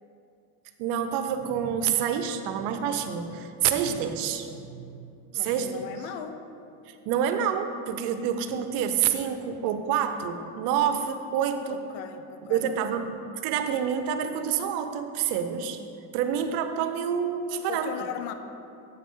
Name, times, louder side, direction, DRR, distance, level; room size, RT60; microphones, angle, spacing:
voice 1, 0.8-4.8 5.3-5.8 6.9-11.8 12.5-13.1 13.4-15.8 16.1-18.0, right 8 dB, 75° right, 8 dB, 0.8 m, -27 dB
voice 2, 5.3-6.4 11.7-13.1 17.7-18.3, left 9 dB, 80° left, 8 dB, 0.9 m, -38 dB
9.4 x 8.1 x 3.8 m, 2.6 s
cardioid pair, 120°, 41 cm